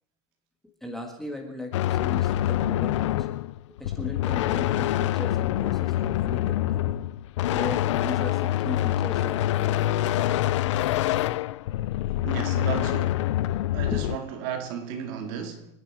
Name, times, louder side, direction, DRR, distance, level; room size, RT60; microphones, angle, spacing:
voice 1, 0.8-3.3 3.8-7.0 7.5-10.3 13.9-14.1, left 2 dB, ahead, 1.6 m, -37 dB
sound 1, 1.7-14.2, left 13 dB, 80° left, 0.6 m, -25 dB
voice 2, 12.2-13.3 13.7-15.7, right 8 dB, 45° right, 2.1 m, -34 dB
27.0 x 10.5 x 4.7 m
supercardioid pair, 175°, 15 cm